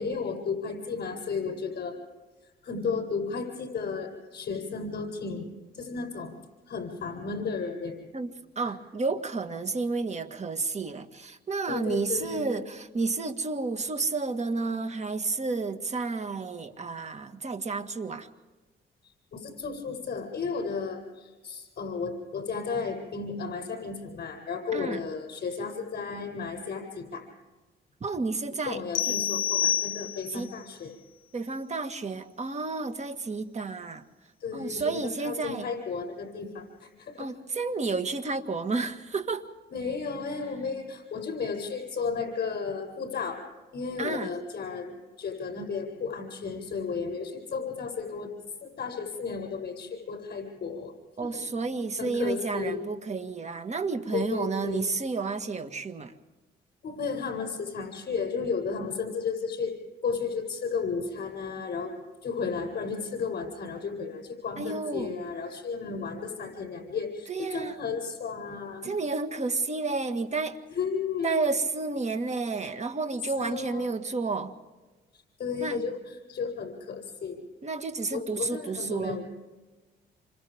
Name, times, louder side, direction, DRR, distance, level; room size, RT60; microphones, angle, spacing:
voice 1, 0.0-2.0 2.4-5.5 5.8-6.3 6.7-8.0 11.7-12.5 19.3-27.3 28.7-30.9 34.4-37.3 39.7-43.4 43.7-48.3 48.6-50.9 51.2-51.7 52.0-52.8 54.1-54.8 56.8-59.7 60.0-62.0 62.2-68.9 70.7-71.6 73.4-73.9 75.4-76.0 76.3-77.4 78.1-79.2, left 5 dB, 55° left, 4 dB, 8.0 m, -33 dB
voice 2, 8.1-18.3 24.7-25.0 28.0-28.8 29.1-29.2 30.3-30.5 31.3-34.0 34.5-35.7 37.2-39.5 44.0-44.3 51.2-56.1 64.6-65.1 67.3-67.8 68.8-70.6 71.2-74.5 75.6-75.8 77.6-79.2, right 4 dB, 35° right, 8 dB, 1.9 m, -31 dB
sound 1, 28.9-30.5, left 10 dB, 75° left, 0.9 m, -28 dB
28.5 x 26.5 x 3.6 m, 1.2 s
cardioid pair, 90°, 20 cm